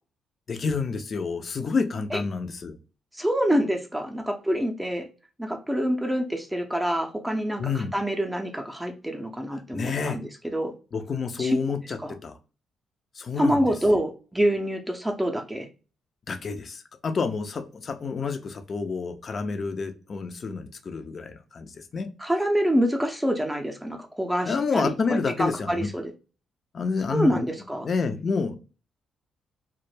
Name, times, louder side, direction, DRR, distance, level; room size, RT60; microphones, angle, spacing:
voice 1, 0.5-2.8 7.6-7.9 9.7-10.2 10.9-12.3 13.2-13.6 13.9-14.0 16.3-22.1 24.4-25.9 26.7-27.5 27.8-28.6, left 4 dB, 50° left, 7 dB, 0.5 m, -29 dB
voice 2, 3.1-5.1 5.4-10.7 11.4-11.6 12.0-12.1 13.4-15.7 22.2-26.1 27.1-27.9, equal, 10° right, 3 dB, 0.5 m, -26 dB
2.1 x 2.0 x 3.1 m, 0.33 s
supercardioid pair, 60°, 0 cm